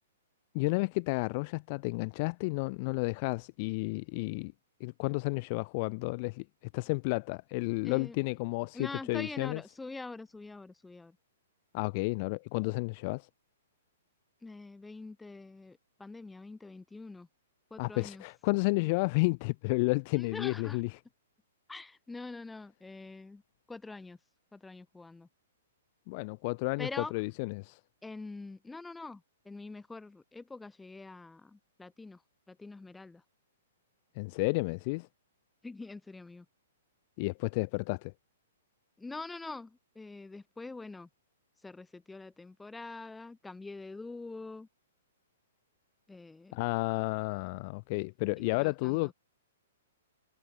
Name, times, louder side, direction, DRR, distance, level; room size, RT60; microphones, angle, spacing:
voice 1, 0.5-4.5 4.8-6.4 6.7-9.6 11.7-13.3 17.8-21.0 26.1-27.8 34.2-35.1 37.2-38.1 46.5-49.1, left 28 dB, 40° left, 1.0 m, -31 dB
voice 2, 7.8-8.2 8.7-11.2 14.4-17.3 17.7-18.2 20.1-20.8 21.7-23.4 23.7-24.2 24.5-25.3 26.8-27.1 28.0-32.2 32.5-33.2 35.6-36.4 39.0-41.1 41.6-44.7 46.1-46.6 48.4-49.1, left 3 dB, 5° left, 4.8 m, -44 dB
figure-of-eight pair, 115°, 0 cm